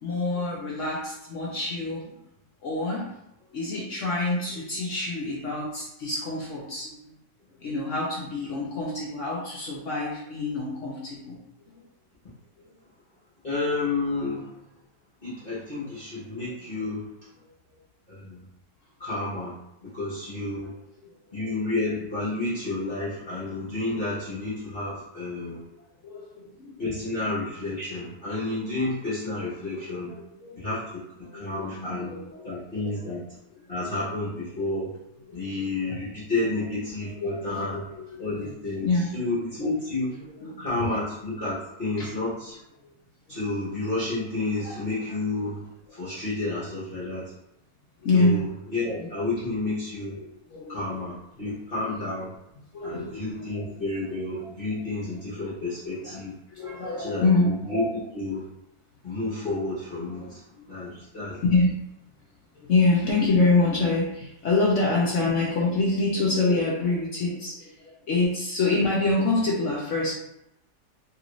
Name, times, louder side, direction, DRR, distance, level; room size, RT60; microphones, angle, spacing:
voice 1, 0.0-2.2 2.6-3.1 3.5-7.1 7.6-11.4 21.0-21.1 21.5-21.6 22.3-22.4 26.0-26.8 29.5-30.7 31.2-32.5 33.5-34.0 35.3-35.5 35.8-36.0 36.4-36.6 37.2-38.5 38.8-39.1 40.2-40.9 42.0-42.1 42.8-42.9 43.3-43.4 46.9-47.1 48.0-48.4 49.0-49.1 50.1-51.0 51.4-51.5 52.7-53.5 56.5-57.5 60.6-60.8 61.3-61.8 62.5-70.1, left 3 dB, 65° left, -4 dB, 0.8 m, -27 dB
voice 2, 13.4-14.5 15.2-17.1 18.1-18.4 19.0-19.6 19.8-20.7 21.3-25.6 26.8-30.2 30.6-31.0 31.3-32.1 32.4-33.2 33.7-35.0 35.3-37.8 38.2-38.9 39.1-40.1 40.6-42.6 43.3-45.6 45.9-47.3 48.1-48.4 48.7-50.1 50.7-52.3 52.8-56.3 57.0-58.4 59.0-60.4 60.7-61.4, left 2 dB, 40° left, -11 dB, 1.0 m, -30 dB
2.9 x 2.5 x 3.0 m, 0.84 s
omnidirectional pair, 1.9 m